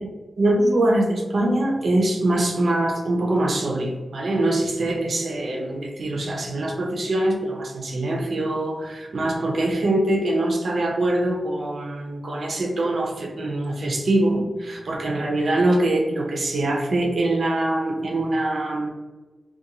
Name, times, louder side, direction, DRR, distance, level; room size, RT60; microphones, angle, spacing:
voice 1, 0.4-18.9, right 1 dB, 60° right, 0 dB, 0.5 m, -23 dB
2.4 x 2.3 x 2.9 m, 1.2 s
wide cardioid pair, 145°, 0 cm